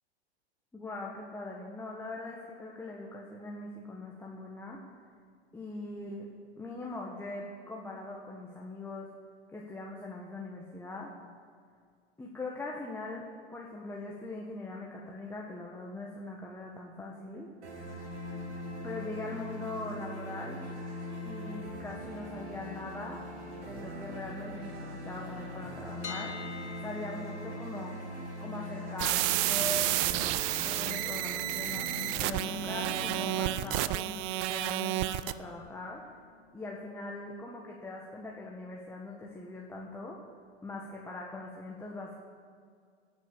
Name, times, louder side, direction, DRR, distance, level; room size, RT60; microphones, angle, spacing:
voice 1, 0.7-4.8 5.5-9.1 9.5-11.1 12.2-17.5 18.8-20.6 21.2-23.2 23.6-26.4 26.8-28.0 28.4-30.3 30.6-36.1 36.5-40.2 40.6-42.2, left 2 dB, 5° left, -2 dB, 1.5 m, -41 dB
sound 1, 17.6-33.6, equal, 60° right, 4.4 m, -41 dB
sound 2, 26.0-37.9, left 6 dB, 80° left, 0.9 m, -51 dB
sound 3, 29.0-35.3, right 15 dB, 30° right, 0.4 m, -31 dB
17.0 x 6.2 x 8.5 m, 2.1 s
figure-of-eight pair, 100°, 34 cm